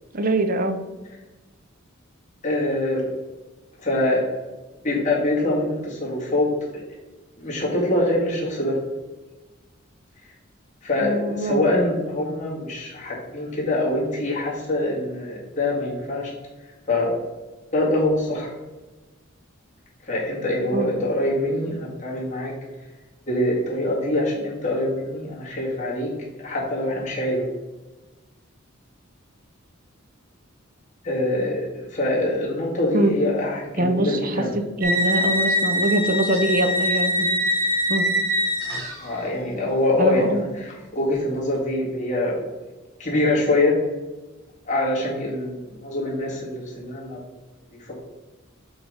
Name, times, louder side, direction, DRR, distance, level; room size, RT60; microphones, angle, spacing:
voice 1, 0.1-0.8 11.0-11.7 20.7-20.9 32.9-33.1 33.8-34.4 34.8-37.3 37.9-38.0 40.0-40.4, right 1 dB, 45° right, 7 dB, 0.7 m, -23 dB
voice 2, 2.4-3.1 3.8-4.3 4.8-6.5 7.4-8.8 10.8-16.3 16.9-17.1 17.7-18.5 20.0-22.5 23.3-27.4 31.0-34.6 39.0-42.4 43.0-43.8 44.7-47.2 47.7-48.0, left 1 dB, 35° left, -4 dB, 1.9 m, -24 dB
sound 1, 34.8-39.3, left 1 dB, 70° right, 2.4 m, -23 dB
7.2 x 3.9 x 4.9 m, 1.2 s
head